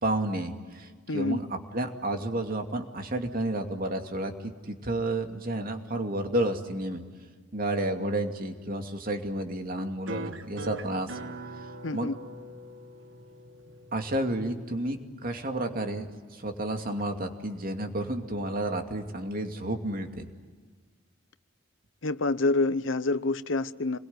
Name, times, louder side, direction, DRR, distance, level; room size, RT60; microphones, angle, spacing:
voice 1, 0.0-7.0 7.5-11.2 11.6-12.1 13.9-20.3, right 1 dB, 50° right, 2.5 m, -31 dB
voice 2, 1.1-1.4 11.8-12.2 22.0-24.0, left 2 dB, 90° left, 0.9 m, -27 dB
sound 1, 10.1-15.1, right 1 dB, 90° right, 1.5 m, -42 dB
27.5 x 22.0 x 9.6 m
head